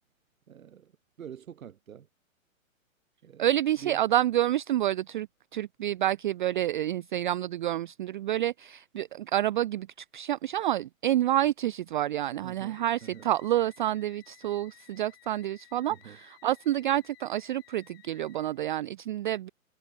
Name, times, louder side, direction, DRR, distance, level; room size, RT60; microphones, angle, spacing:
voice 1, 0.5-0.9 1.2-2.1 3.2-3.5 3.8-4.0 12.4-13.3 15.9-16.2, right 9 dB, 75° right, 1.9 m, -45 dB
voice 2, 3.4-5.3 5.5-19.5, right 13 dB, 40° right, 0.4 m, -28 dB
sound 1, 12.7-18.8, left 18 dB, 45° left, 6.4 m, -58 dB
hypercardioid pair, 135°, 41 cm